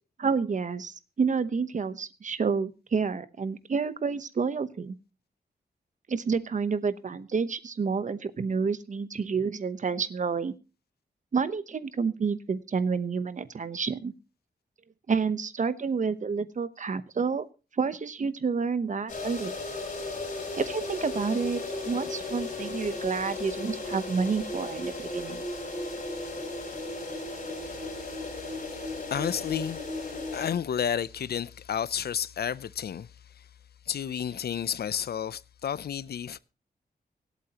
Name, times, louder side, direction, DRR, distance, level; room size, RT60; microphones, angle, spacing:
voice 1, 0.2-4.9 6.1-10.5 11.3-14.1 15.1-17.5 17.7-19.5 20.6-25.4, right 5 dB, 50° right, 0.9 m, -29 dB
sound 1, 19.1-30.5, left 2 dB, 50° left, 5.4 m, -35 dB
voice 2, 28.8-33.1 33.9-36.4, left 8 dB, 70° left, 0.6 m, -31 dB
24.5 x 8.3 x 2.9 m
wide cardioid pair, 145°, 17 cm